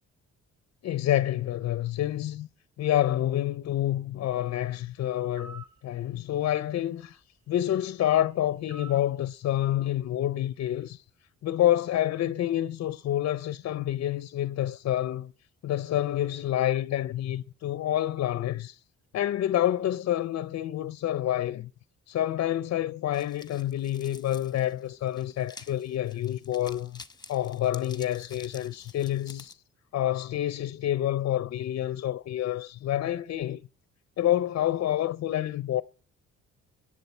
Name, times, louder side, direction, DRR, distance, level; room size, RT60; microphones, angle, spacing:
voice 1, 0.8-2.5 2.8-7.2 7.5-11.0 11.4-15.3 15.6-18.8 19.1-21.7 22.1-27.0 27.3-29.6 29.9-33.6 34.2-35.8, left 12 dB, 55° left, 0.5 m, -28 dB
sound 1, 5.3-5.8 8.7-9.1, right 4 dB, 45° right, 2.1 m, -46 dB
sound 2, 23.1-29.5, left 3 dB, 15° left, 0.9 m, -50 dB
22.5 x 7.7 x 4.3 m
cardioid pair, 90°, 30 cm